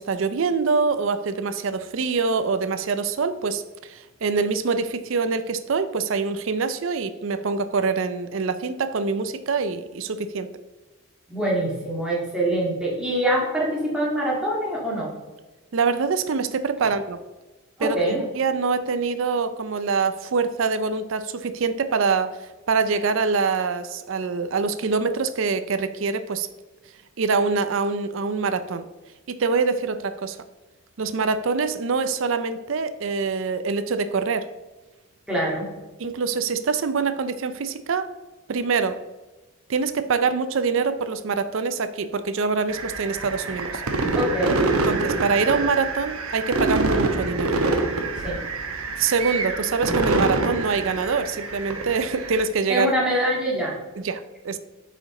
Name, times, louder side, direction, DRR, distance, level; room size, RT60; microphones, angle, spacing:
voice 1, 0.0-10.5 15.7-17.2 17.8-22.3 22.7-26.5 27.2-28.9 29.3-30.4 31.0-34.5 36.0-38.1 38.5-39.0 39.7-43.8 44.9-47.6 49.0-52.9 54.0-54.6, right 4 dB, 60° right, 11 dB, 0.4 m, -25 dB
voice 2, 11.3-15.1 17.8-18.2 35.3-35.7 44.1-44.6 48.2-48.4 52.7-53.8, right 1 dB, 5° right, -5 dB, 1.9 m, -24 dB
sound 1, 42.7-52.5, right 2 dB, 85° right, 1.0 m, -26 dB
8.1 x 5.0 x 3.8 m, 1.2 s
head